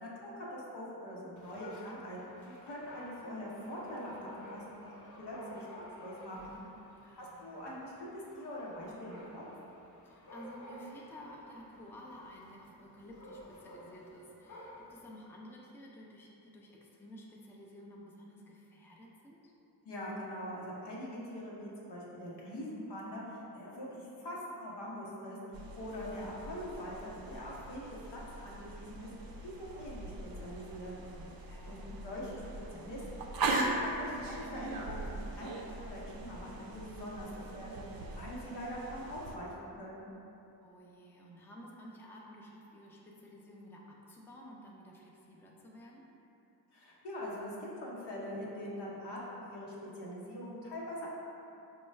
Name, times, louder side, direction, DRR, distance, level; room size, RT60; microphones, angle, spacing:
voice 1, 0.0-6.6 7.1-9.4 19.8-29.1 29.4-30.9 31.7-32.4 32.7-33.0 33.5-37.8 38.1-40.1 46.7-51.1, equal, 80° left, -5 dB, 0.9 m, -43 dB
Dog, 1.4-15.1, equal, 50° left, 0.6 m, -53 dB
voice 2, 7.0-7.5 10.0-19.5 31.3-32.0 40.6-46.0, equal, 5° left, -2 dB, 0.4 m, -52 dB
sound 1, 25.5-39.4, right 2 dB, 60° right, 0.5 m, -40 dB
4.2 x 2.3 x 3.2 m, 2.9 s
cardioid pair, 85°, 40 cm